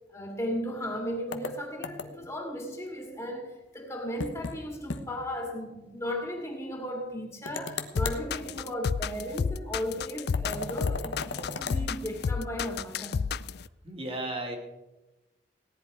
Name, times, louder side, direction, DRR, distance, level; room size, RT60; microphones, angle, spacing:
voice 1, 0.1-13.2, equal, 15° left, 2.2 m, -35 dB
sound 1, 1.3-2.3 4.2-4.6 4.9-5.0 5.4-5.5 7.5-8.2 10.3-11.8, left 4 dB, 85° left, 1.1 m, -36 dB
sound 2, 8.0-13.6, left 5 dB, 60° left, 0.4 m, -30 dB
voice 2, 13.8-14.6, right 2 dB, 30° right, 2.3 m, -34 dB
17.5 x 10.5 x 4.8 m
head